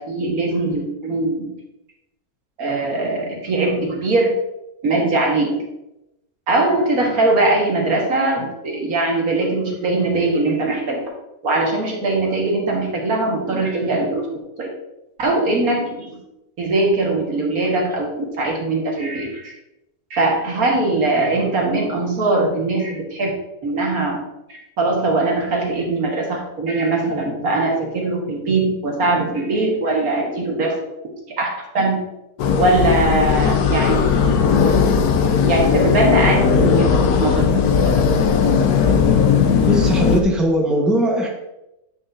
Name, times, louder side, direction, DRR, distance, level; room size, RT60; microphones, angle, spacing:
voice 1, 0.0-1.5 2.6-4.3 4.8-5.6 6.5-11.1 11.4-14.3 14.6-14.7 15.2-16.2 16.6-19.5 20.1-23.3 23.6-24.2 24.8-30.7 31.3-31.5 31.7-32.0 32.6-34.1 35.4-37.4 37.8-37.9, right 2 dB, 70° right, -1 dB, 2.0 m, -21 dB
sound 1, 32.4-40.2, left 6 dB, 80° left, 1.2 m, -17 dB
voice 2, 39.7-41.3, equal, ahead, -1 dB, 1.1 m, -19 dB
9.6 x 6.3 x 2.7 m, 0.89 s
omnidirectional pair, 1.6 m